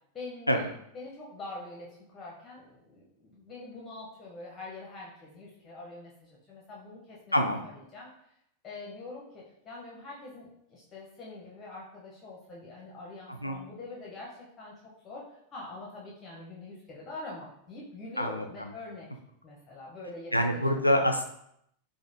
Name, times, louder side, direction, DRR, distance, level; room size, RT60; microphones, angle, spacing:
voice 1, 0.1-0.6 0.9-7.3 7.6-8.1 8.6-19.1 19.4-20.9, left 2 dB, 25° left, -4 dB, 0.8 m, -44 dB
voice 2, 7.3-7.7 13.3-13.6 18.2-18.7 20.3-21.2, equal, 90° left, 4 dB, 0.3 m, -26 dB
5.0 x 2.0 x 2.6 m, 0.75 s
figure-of-eight pair, 90°, 0 cm